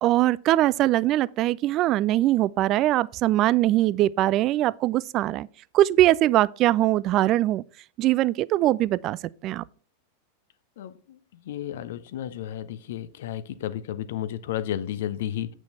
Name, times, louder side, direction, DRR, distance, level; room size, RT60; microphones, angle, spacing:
voice 1, 0.0-5.5 5.7-7.6 8.0-9.2 9.4-9.6, right 15 dB, 35° right, 0.3 m, -22 dB
voice 2, 10.8-15.5, left 11 dB, 55° left, 0.6 m, -33 dB
8.7 x 6.2 x 4.2 m
figure-of-eight pair, 90°, 0 cm